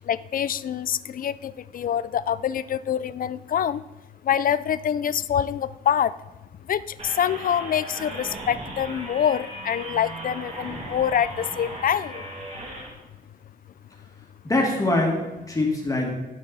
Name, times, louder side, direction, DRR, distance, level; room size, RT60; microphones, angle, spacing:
voice 1, 0.1-3.8 4.2-6.1 6.7-12.2, left 9 dB, 60° left, 16 dB, 0.4 m, -25 dB
sound 1, 7.0-12.9, right 1 dB, 45° right, 2.5 m, -37 dB
voice 2, 14.4-16.2, left 2 dB, 20° left, -1 dB, 2.1 m, -23 dB
16.5 x 6.2 x 4.1 m, 1.1 s
wide cardioid pair, 140°, 16 cm